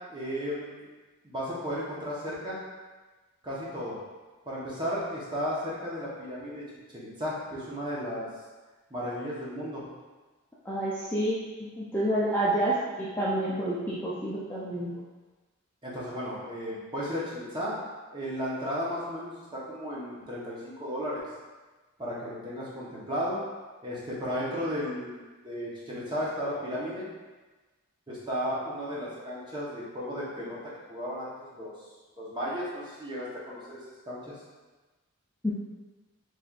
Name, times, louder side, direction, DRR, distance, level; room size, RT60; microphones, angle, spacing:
voice 1, 0.1-0.8 1.2-2.6 3.4-4.0 4.4-6.6 6.9-8.3 8.9-9.8 15.8-17.7 18.1-21.2 22.0-23.4 23.8-25.2 25.4-27.1 28.1-30.6 30.9-31.7 32.2-33.8 34.1-34.4, equal, 20° right, -7 dB, 0.9 m, -34 dB
voice 2, 10.7-15.0 35.4-35.5, right 1 dB, 10° left, -8 dB, 0.4 m, -29 dB
4.2 x 3.2 x 2.4 m, 1.3 s
head